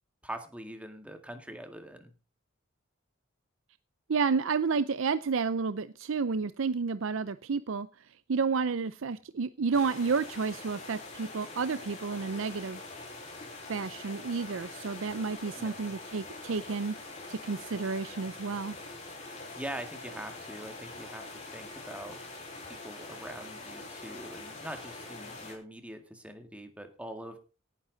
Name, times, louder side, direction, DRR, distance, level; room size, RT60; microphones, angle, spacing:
voice 1, 0.2-2.1 15.6-15.8 19.6-21.3 21.5-22.2 22.6-27.4, right 1 dB, 5° right, 6 dB, 1.9 m, -43 dB
voice 2, 4.1-7.9 8.3-12.8 13.7-16.9 17.3-18.7, right 5 dB, 65° right, 14 dB, 0.5 m, -31 dB
sound 1, 9.7-25.6, left 2 dB, 35° left, 4.9 m, -44 dB
17.5 x 10.0 x 4.0 m, 0.33 s
head